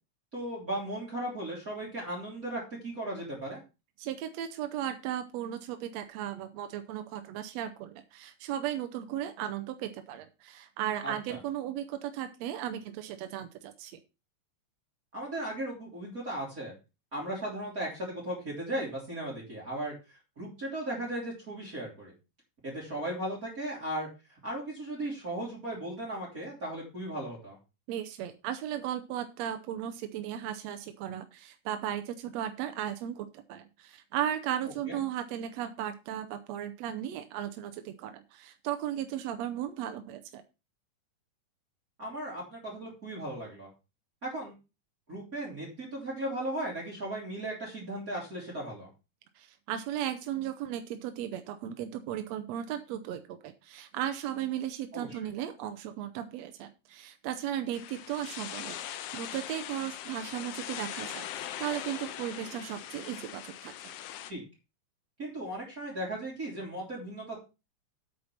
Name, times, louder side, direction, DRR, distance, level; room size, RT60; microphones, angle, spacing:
voice 1, 0.3-3.6 11.0-11.4 15.1-16.7 17.1-22.1 22.6-24.1 24.4-27.6 34.9-35.0 42.0-43.7 44.2-44.5 45.1-48.9 54.9-55.3 64.3-64.4 65.2-67.4, right 1 dB, 25° right, -3 dB, 3.8 m, -36 dB
voice 2, 4.0-14.0 27.9-40.4 49.3-63.7, right 11 dB, 70° right, 8 dB, 1.7 m, -36 dB
sound 1, 57.7-64.3, left 11 dB, 80° left, 1.4 m, -41 dB
8.7 x 5.7 x 5.8 m, 0.29 s
omnidirectional pair, 3.7 m